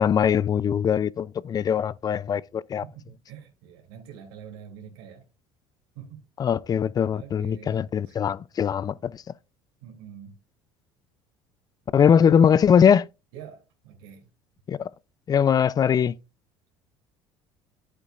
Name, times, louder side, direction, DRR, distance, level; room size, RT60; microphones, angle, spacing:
voice 1, 0.0-2.8 6.4-9.1 11.9-13.0 14.7-14.9 15.3-16.1, left 8 dB, 35° left, 0.4 m, -21 dB
voice 2, 2.8-5.2 5.9-6.3 7.1-8.2 9.8-10.4 13.3-14.3, right 8 dB, 85° right, 2.9 m, -45 dB
9.9 x 8.3 x 2.4 m
supercardioid pair, 90°, 12 cm